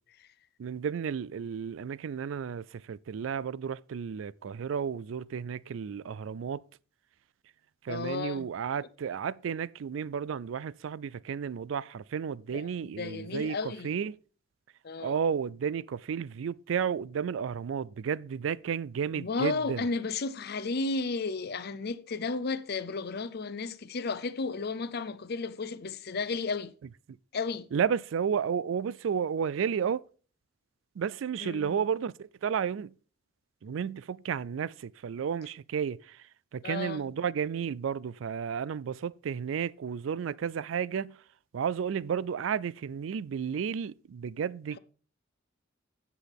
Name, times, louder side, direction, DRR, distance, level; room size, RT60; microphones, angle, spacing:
voice 1, 0.6-6.6 7.8-14.2 15.0-19.9 27.7-30.1 31.0-32.9 33.6-36.3 36.5-41.2 41.5-44.8, right 7 dB, 75° right, 0.4 m, -32 dB
voice 2, 7.9-8.5 12.5-13.9 14.8-15.1 19.1-26.7 27.3-27.7 31.4-31.7 36.6-37.1, left 4 dB, 55° left, 0.6 m, -33 dB
16.0 x 6.1 x 3.5 m
head